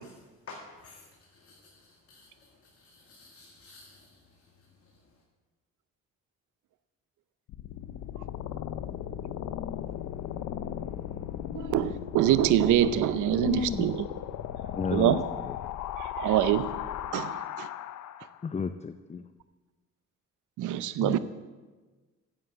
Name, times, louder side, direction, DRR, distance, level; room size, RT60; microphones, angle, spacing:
voice 1, 0.5-1.0 1.4-1.6 2.1-2.3 2.9-4.1, left 3 dB, 50° left, -1 dB, 2.1 m, -49 dB
sound 1, 7.5-18.5, left 11 dB, 75° left, 0.7 m, -37 dB
voice 2, 11.6-14.0 14.9-15.2 16.0-16.7 17.1-17.7 20.6-21.2, right 12 dB, 80° right, 15 dB, 0.7 m, -25 dB
voice 3, 13.3-13.9 14.7-15.6 18.4-19.2 21.0-21.2, left 5 dB, 25° left, 10 dB, 0.5 m, -32 dB
10.0 x 8.0 x 7.9 m, 1.3 s
cardioid pair, 90°, 30 cm